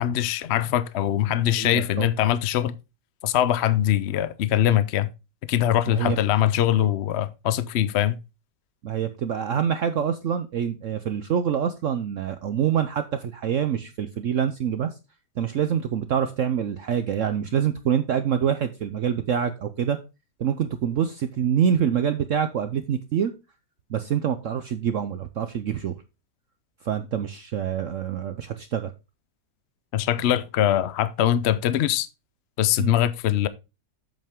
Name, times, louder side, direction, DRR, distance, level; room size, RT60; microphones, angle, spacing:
voice 1, 0.0-2.8 3.2-5.1 5.5-8.2 29.9-32.1 32.6-33.5, left 11 dB, 65° left, 0.6 m, -22 dB
voice 2, 1.4-2.1 5.9-6.2 8.8-14.9 15.4-20.0 20.4-23.3 23.9-25.9 26.8-28.9 32.8-32.9, right 8 dB, 60° right, 0.9 m, -26 dB
8.0 x 7.4 x 3.6 m
omnidirectional pair, 1.8 m